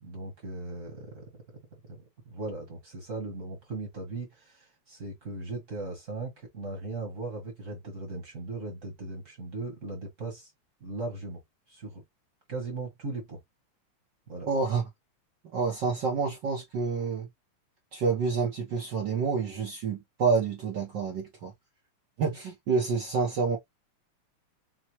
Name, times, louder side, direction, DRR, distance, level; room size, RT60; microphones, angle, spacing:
voice 1, 0.0-10.5 10.8-11.4 11.7-12.0 12.5-13.4 14.3-14.5, right 3 dB, 45° right, 1.0 m, -38 dB
voice 2, 14.5-14.8 15.5-17.3 17.9-21.5 22.2-23.6, right 5 dB, 85° right, 0.9 m, -28 dB
5.9 x 2.2 x 2.9 m
omnidirectional pair, 3.4 m